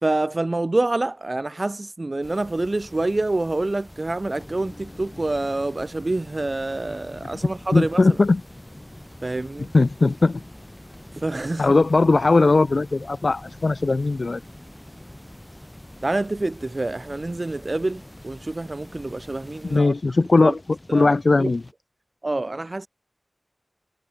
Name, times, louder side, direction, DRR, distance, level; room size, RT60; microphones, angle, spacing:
voice 1, 0.0-8.0 9.2-9.7 11.2-11.7 16.0-19.9 20.4-20.5 20.9-21.5 22.2-22.9, right 2 dB, 40° right, 1.4 m, -27 dB
sound 1, 2.2-19.8, equal, 5° left, 6.0 m, -46 dB
sound 2, 4.3-21.7, left 1 dB, 30° left, 5.9 m, -47 dB
voice 2, 7.7-8.4 9.6-10.4 11.6-14.4 19.6-21.6, left 3 dB, 60° left, 1.4 m, -19 dB
wide cardioid pair, 70°, 0 cm